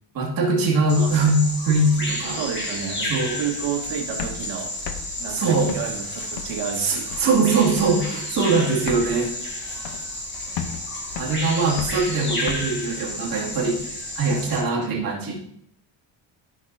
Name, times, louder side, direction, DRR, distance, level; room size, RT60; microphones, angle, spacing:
voice 1, 0.1-2.4 3.1-3.4 5.3-5.7 6.8-9.3 11.2-13.8 14.1-15.3, right 3 dB, 50° right, -3 dB, 2.4 m, -22 dB
Bird vocalization bird call bird song, 0.9-14.6, left 1 dB, 25° left, 1.8 m, -31 dB
voice 2, 0.9-1.3 2.3-3.1 3.4-4.7 5.2-7.3 14.7-15.1, right 8 dB, 80° right, 2 dB, 1.6 m, -31 dB
sound 1, 4.2-6.7 7.1-7.5 7.8-8.2 8.4-8.5 8.7-10.3 10.6-12.6, left 8 dB, 80° left, 1.0 m, -35 dB
14.0 x 6.2 x 2.7 m, 0.73 s
cardioid pair, 160°, 45 cm